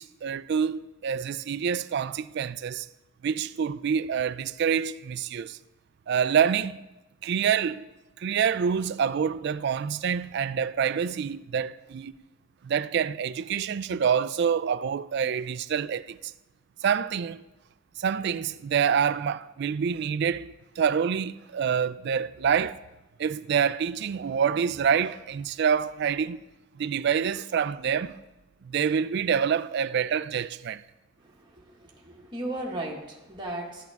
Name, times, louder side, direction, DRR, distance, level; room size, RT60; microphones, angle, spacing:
voice 1, 0.0-2.9 3.2-5.6 6.1-6.8 7.2-7.9 8.2-12.1 12.6-16.3 16.8-17.4 18.0-22.8 23.2-26.4 26.8-28.2 28.6-30.8, right 7 dB, 55° right, 0.3 m, -27 dB
voice 2, 31.2-33.9, right 1 dB, 20° right, 1.5 m, -36 dB
13.0 x 8.3 x 3.5 m
head